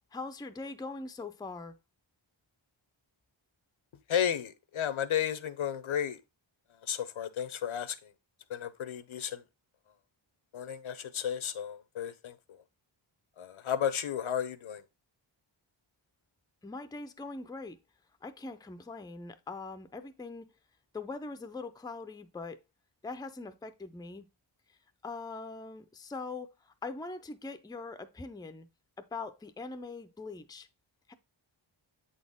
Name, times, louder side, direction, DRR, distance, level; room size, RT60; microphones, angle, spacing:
voice 1, 0.0-1.7 16.6-17.8 18.2-20.5 20.9-22.6 23.0-24.3 25.0-28.7 29.0-30.7 31.1-31.2, left 3 dB, 10° left, 0.5 m, -42 dB
voice 2, 4.1-6.2 6.8-8.1 8.5-9.4 10.5-12.4 13.4-14.8, left 9 dB, 75° left, 0.8 m, -33 dB
7.7 x 4.2 x 3.5 m
wide cardioid pair, 120°, 48 cm